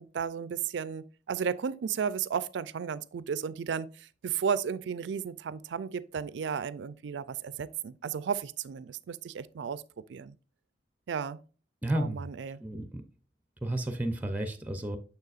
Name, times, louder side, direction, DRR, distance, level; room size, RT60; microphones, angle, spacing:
voice 1, 0.0-9.8 10.1-10.3 11.1-11.4 11.9-12.6, right 7 dB, 70° right, 0.4 m, -34 dB
voice 2, 11.8-12.2 12.6-13.0 13.6-15.0, right 1 dB, 10° right, 0.5 m, -32 dB
6.7 x 6.6 x 2.4 m
head